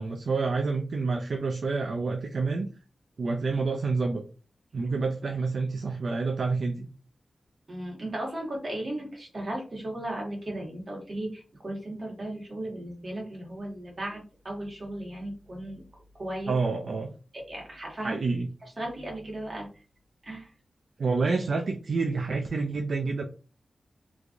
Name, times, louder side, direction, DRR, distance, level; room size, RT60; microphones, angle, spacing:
voice 1, 0.0-2.7 3.2-4.2 4.7-6.9 16.5-17.1 18.0-18.5 21.0-23.2, right 4 dB, 65° right, 3 dB, 0.4 m, -28 dB
voice 2, 7.7-15.8 16.2-16.6 17.5-18.2 18.8-19.7 20.2-20.5, right 1 dB, 45° right, -2 dB, 1.7 m, -36 dB
3.4 x 3.2 x 2.5 m, 0.36 s
wide cardioid pair, 100°, 0 cm